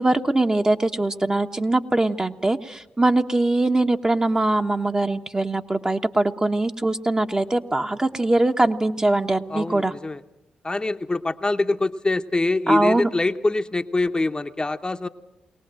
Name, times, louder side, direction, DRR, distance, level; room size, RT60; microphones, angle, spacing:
voice 1, 0.0-9.9 12.7-13.1, right 2 dB, 20° right, 5 dB, 1.2 m, -22 dB
voice 2, 9.5-10.2 10.6-15.1, left 2 dB, 25° left, 7 dB, 0.9 m, -24 dB
22.0 x 18.5 x 7.7 m, 0.89 s
supercardioid pair, 45°, 3 cm